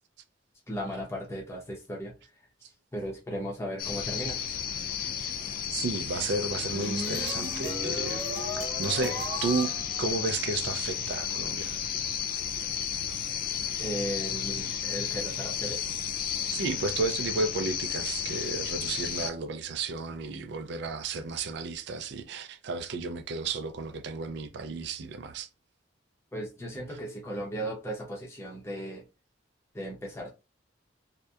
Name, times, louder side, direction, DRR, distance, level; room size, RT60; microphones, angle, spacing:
voice 1, 0.7-2.2 2.9-4.4 13.8-15.8 26.3-29.0 29.7-30.3, equal, 15° left, 0.7 m, -36 dB
sound 1, 3.8-19.3, left 9 dB, 50° left, 0.3 m, -33 dB
voice 2, 5.7-8.2 8.5-9.7 10.0-11.8 16.5-25.5, right 4 dB, 60° right, 0.4 m, -33 dB
sound 2, 6.4-10.7, equal, 5° right, 1.0 m, -37 dB
2.7 x 2.1 x 2.3 m
head